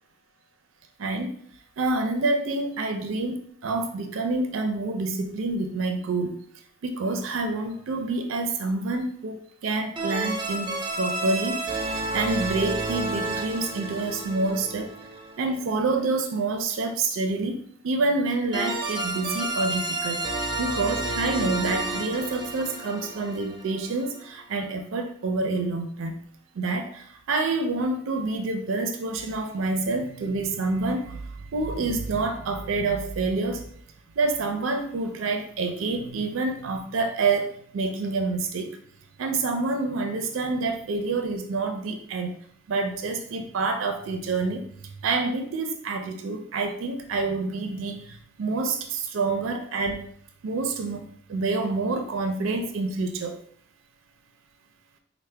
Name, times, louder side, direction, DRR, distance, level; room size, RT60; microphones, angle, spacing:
voice 1, 1.0-1.4 1.8-6.4 6.8-14.9 15.4-20.3 20.6-26.1 26.5-33.7 34.2-38.8 39.2-42.3 42.7-44.6 45.0-50.1 50.4-53.4, right 3 dB, 85° right, 6 dB, 0.4 m, -27 dB
sound 1, 7.0-7.5 10.0-15.8 18.5-24.4, right 2 dB, 25° right, 0.4 m, -31 dB
4.5 x 2.1 x 3.2 m, 0.63 s
head